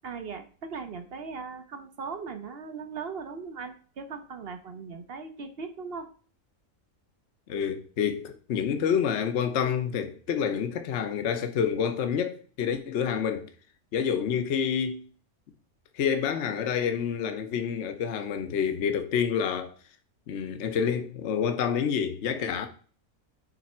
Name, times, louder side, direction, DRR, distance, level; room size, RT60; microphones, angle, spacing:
voice 1, 0.0-6.1, right 5 dB, 50° right, 0.8 m, -39 dB
voice 2, 7.5-13.5 13.9-15.0 15.9-19.7 20.3-22.7, left 7 dB, 55° left, 1.0 m, -28 dB
9.3 x 3.4 x 4.3 m
omnidirectional pair, 1.6 m